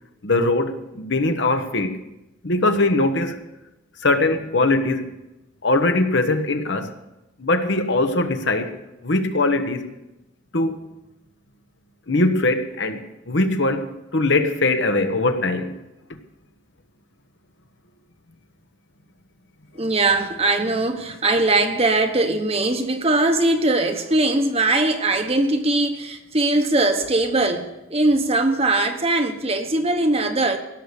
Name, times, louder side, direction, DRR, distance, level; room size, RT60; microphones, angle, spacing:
voice 1, 0.2-2.0 2.4-3.4 4.0-5.1 5.6-6.9 7.4-9.9 10.5-10.8 12.1-15.7, left 2 dB, 60° left, 1.1 m, -21 dB
voice 2, 19.7-30.6, right 2 dB, 30° right, 1.1 m, -20 dB
16.5 x 6.7 x 8.3 m
head